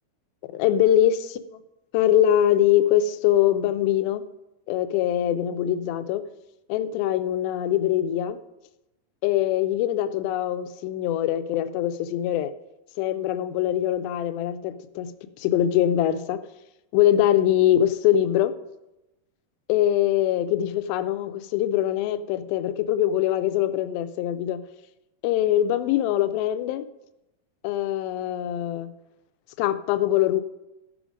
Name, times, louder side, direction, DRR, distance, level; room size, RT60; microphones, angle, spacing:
voice 1, 0.5-1.4 1.9-4.2 4.7-6.2 6.7-8.4 9.2-12.5 13.0-15.1 15.4-16.4 16.9-18.5 19.7-24.6 25.2-26.8 27.6-28.9 29.6-30.4, left 11 dB, 85° left, 11 dB, 2.4 m, -23 dB
13.0 x 5.0 x 5.0 m, 0.96 s
omnidirectional pair, 4.2 m